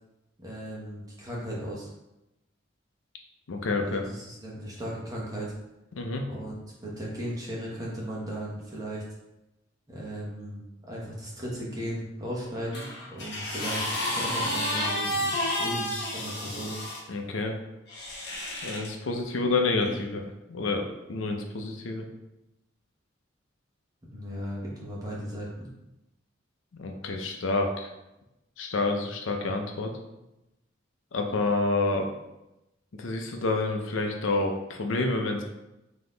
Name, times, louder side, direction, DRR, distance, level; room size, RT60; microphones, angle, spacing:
voice 1, 0.4-1.9 3.8-5.5 6.3-6.5 6.8-9.0 9.9-13.8 14.1-16.7 24.1-25.7, equal, 20° right, -5 dB, 1.0 m, -36 dB
voice 2, 3.5-4.0 5.9-6.2 17.1-17.6 18.6-22.1 26.7-27.9 28.6-30.0 31.1-32.1 32.9-35.4, left 3 dB, 80° left, 3 dB, 0.6 m, -28 dB
sound 1, 12.7-17.0 17.9-18.9 19.8-20.0, left 1 dB, 55° left, 1.0 m, -31 dB
3.9 x 2.9 x 3.8 m, 0.93 s
head